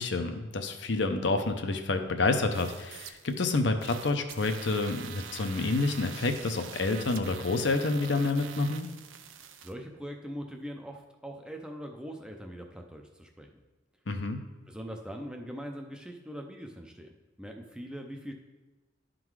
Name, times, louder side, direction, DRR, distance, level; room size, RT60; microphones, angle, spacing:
voice 1, 0.0-8.9 14.1-14.4, left 3 dB, 65° left, 6 dB, 0.6 m, -28 dB
sound 1, 2.5-3.5 3.8-9.7, right 8 dB, 85° right, 0.5 m, -45 dB
voice 2, 9.6-13.6 14.7-18.3, equal, 5° right, 2 dB, 0.5 m, -42 dB
11.0 x 3.8 x 4.7 m, 1.2 s
head